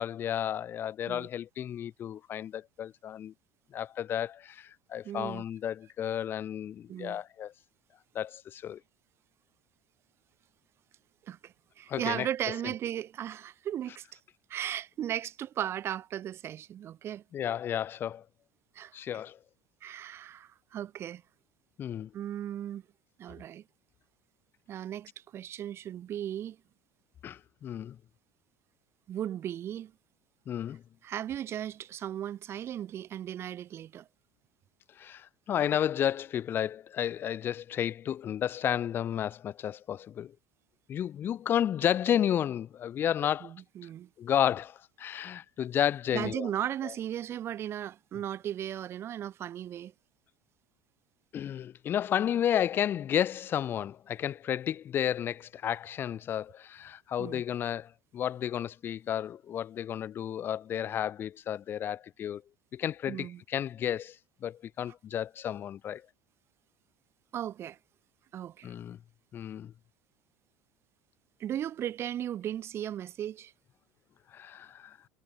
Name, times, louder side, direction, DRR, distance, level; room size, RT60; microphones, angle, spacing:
voice 1, 0.0-3.3 3.7-7.5 8.1-8.8 11.9-12.3 17.3-18.2 18.9-19.4 21.8-22.1 27.2-28.0 30.5-30.8 35.0-40.3 40.9-43.5 44.2-46.5 51.3-62.4 62.7-64.2 64.4-66.0 68.6-69.0 69.3-69.7 74.3-75.0, left 10 dB, 25° left, 0.5 m, -32 dB
voice 2, 5.0-5.4 6.9-7.2 11.3-14.0 14.5-17.2 18.7-18.9 19.8-21.2 22.1-22.8 23.2-23.6 24.7-26.6 29.1-29.9 31.0-34.1 43.4-44.1 46.1-49.9 57.2-57.4 63.1-63.4 67.3-67.8 68.3-68.7 71.4-73.5, right 11 dB, 30° right, 1.1 m, -36 dB
cardioid pair, 165°, 8 cm